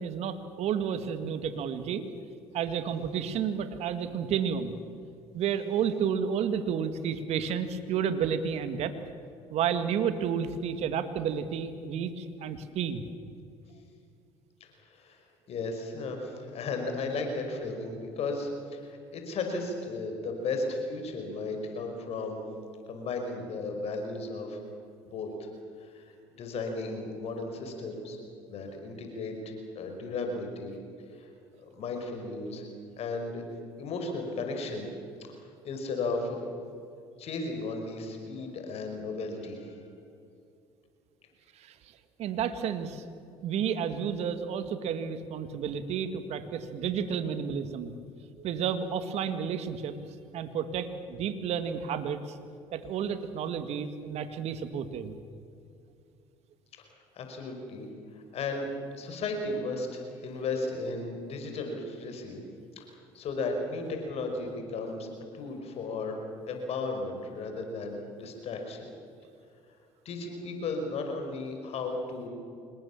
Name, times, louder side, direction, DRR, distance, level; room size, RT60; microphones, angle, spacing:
voice 1, 0.0-2.1 2.5-4.8 5.3-8.9 9.5-13.0 41.5-41.8 42.2-43.0 43.4-47.9 48.4-50.0 50.3-52.4 52.7-55.1, right 7 dB, 60° right, 10 dB, 1.9 m, -31 dB
voice 2, 14.6-22.4 22.9-24.6 25.0-25.5 25.8-28.2 28.5-30.8 31.1-31.3 31.6-32.7 33.0-33.5 33.8-34.9 35.3-36.5 37.2-39.8 56.7-56.8 57.1-62.4 62.8-62.9 63.1-66.2 66.5-68.9 70.1-72.3, left 3 dB, 55° left, 4 dB, 5.1 m, -35 dB
26.0 x 21.0 x 7.2 m, 2.5 s
hypercardioid pair, 70°, 12 cm